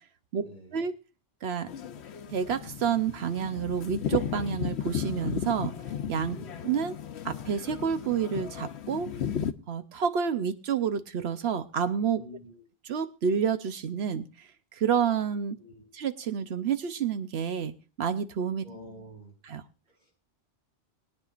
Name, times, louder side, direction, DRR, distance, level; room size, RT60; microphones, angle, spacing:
voice 1, 0.4-0.8 6.3-6.7 12.1-12.6 15.5-15.9 18.6-19.4 19.9-20.1, equal, 45° right, -2 dB, 6.7 m, -48 dB
sound 1, 1.7-9.5, left 8 dB, 90° left, 1.0 m, -35 dB
voice 2, 2.3-6.4 6.6-7.0 7.2-9.1 9.7-12.2 12.8-15.6 15.9-18.7 19.5-19.7, right 7 dB, 80° right, 10 dB, 1.0 m, -29 dB
21.5 x 9.5 x 2.5 m, 0.33 s
omnidirectional pair, 1.1 m